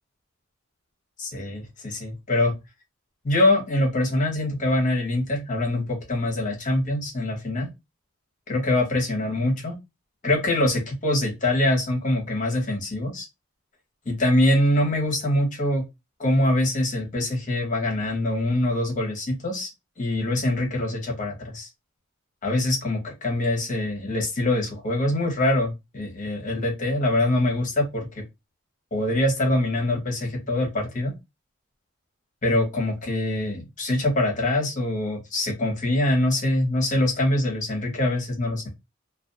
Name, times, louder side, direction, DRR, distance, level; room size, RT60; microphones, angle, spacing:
voice 1, 1.2-2.5 3.2-7.7 8.5-9.8 10.2-13.3 14.1-15.8 16.2-19.7 20.0-21.7 22.4-28.2 28.9-31.1 32.4-38.7, left 1 dB, 40° left, 0.9 m, -24 dB
2.4 x 2.3 x 2.5 m
head